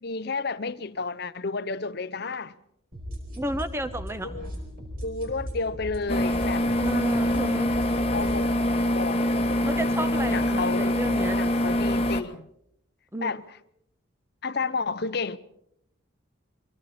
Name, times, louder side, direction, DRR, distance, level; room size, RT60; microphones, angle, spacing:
voice 1, 0.0-2.5 4.2-4.5 5.0-6.7 8.1-9.2 10.3-10.9 11.4-12.5 13.2-13.4 14.4-15.4, left 4 dB, 50° left, 0.7 m, -31 dB
sound 1, 2.9-8.4, equal, 45° right, 4.9 m, -37 dB
voice 2, 3.3-4.3 6.8-7.7 9.6-11.4 13.1-13.3, right 1 dB, 10° right, 1.0 m, -32 dB
sound 2, 6.1-12.2, left 1 dB, 30° left, 1.3 m, -24 dB
29.0 x 23.0 x 4.3 m
head